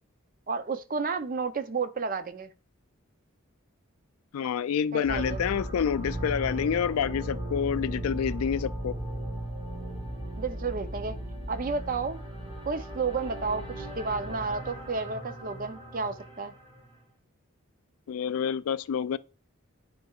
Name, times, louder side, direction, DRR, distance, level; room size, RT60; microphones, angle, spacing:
voice 1, 0.5-2.5 4.9-5.4 10.4-11.2 11.5-12.2 12.6-16.5, right 4 dB, 40° right, 0.5 m, -31 dB
voice 2, 4.3-8.9 18.1-19.2, left 7 dB, 90° left, 0.3 m, -28 dB
sound 1, 5.0-17.0, right 1 dB, 25° right, 3.8 m, -37 dB
9.3 x 4.5 x 2.3 m
head